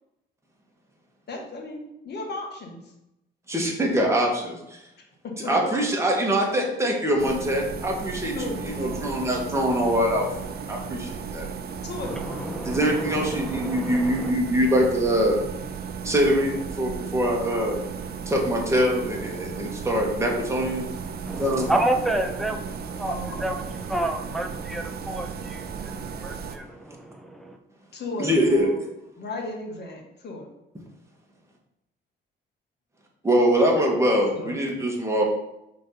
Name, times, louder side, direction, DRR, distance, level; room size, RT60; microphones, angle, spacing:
voice 1, 1.3-2.8 5.2-5.7 6.5-6.8 8.3-9.0 11.8-12.5 23.0-23.5 27.9-28.8 29.2-30.5 34.3-34.6, left 2 dB, 55° left, 1 dB, 1.8 m, -35 dB
voice 2, 3.5-4.8 5.4-11.5 12.6-15.4 16.0-17.8 18.2-20.8 21.4-21.7 28.2-28.9 33.2-35.2, equal, 15° right, -1 dB, 1.7 m, -23 dB
sound 1, 7.2-26.6, right 6 dB, 50° right, 0.7 m, -35 dB
voice 3, 12.0-14.3 21.3-27.6, right 1 dB, ahead, 3 dB, 0.8 m, -30 dB
5.1 x 3.8 x 5.7 m, 0.87 s
cardioid pair, 90°, 20 cm